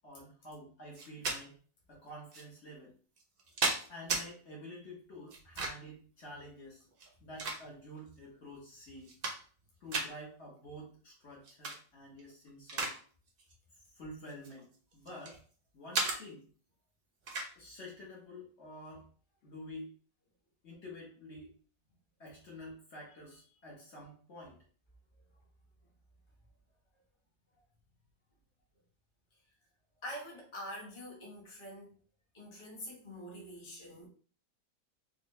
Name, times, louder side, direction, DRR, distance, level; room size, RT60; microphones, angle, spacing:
voice 1, 0.0-1.6 1.9-2.9 3.9-6.9 7.2-9.1 9.8-12.9 13.9-14.7 14.9-15.4 15.7-16.5 17.5-19.1 19.4-19.9 20.6-21.6 22.2-24.6, equal, 50° left, -4 dB, 1.3 m, -49 dB
sound 1, 0.9-1.4 2.3-2.4 3.2-4.2 5.3-5.9 6.9-8.0 8.5-8.6 9.0-9.6 9.9-10.1 11.4-11.8 12.2-13.0 13.3-13.5 14.3-15.4 15.9-16.2 17.3-17.5, right 3 dB, 50° right, 0.7 m, -35 dB
voice 2, 30.0-32.0 32.3-34.1, equal, 20° left, -4 dB, 1.1 m, -45 dB
4.4 x 2.2 x 3.1 m, 0.43 s
omnidirectional pair, 1.6 m